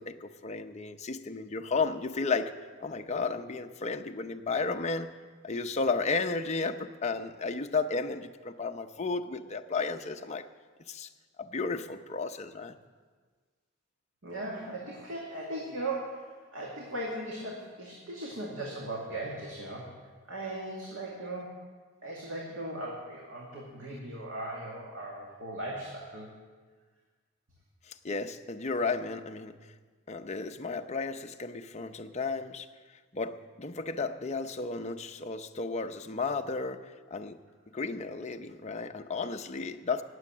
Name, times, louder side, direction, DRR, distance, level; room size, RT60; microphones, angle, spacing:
voice 1, 0.0-5.1 5.4-10.5 10.9-11.1 11.4-12.8 27.9-29.6 30.1-32.7 33.1-37.4 37.7-40.0, left 4 dB, 35° left, 6 dB, 0.7 m, -33 dB
voice 2, 14.2-19.9 20.3-21.6 22.0-26.3, right 1 dB, 75° right, -3 dB, 2.3 m, -38 dB
19.0 x 7.7 x 7.3 m, 1.5 s
head